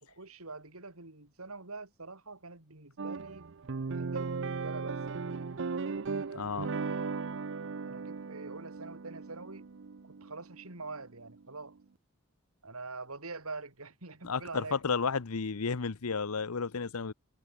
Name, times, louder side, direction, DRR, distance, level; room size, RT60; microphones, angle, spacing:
voice 1, 0.0-3.5 3.9-5.3 7.9-9.6 10.2-11.8 12.6-14.8, right 3 dB, 80° right, 4.0 m, -45 dB
sound 1, 3.0-11.5, right 4 dB, 60° right, 0.6 m, -37 dB
voice 2, 6.3-6.7 14.2-17.1, left 5 dB, 90° left, 0.8 m, -32 dB
head